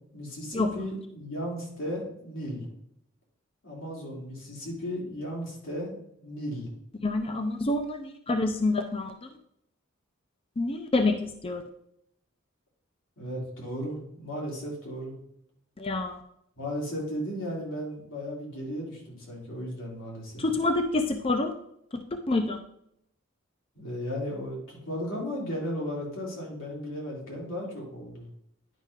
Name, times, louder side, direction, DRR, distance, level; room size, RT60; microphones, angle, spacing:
voice 1, 0.1-2.6 3.6-5.9 6.2-6.7 13.2-15.1 16.6-20.4 23.7-28.2, equal, 90° left, -3 dB, 3.3 m, -35 dB
voice 2, 7.0-9.1 10.6-11.6 15.8-16.2 20.4-21.5 22.1-22.6, left 2 dB, 30° left, 6 dB, 0.5 m, -27 dB
10.0 x 5.4 x 3.7 m, 0.74 s
head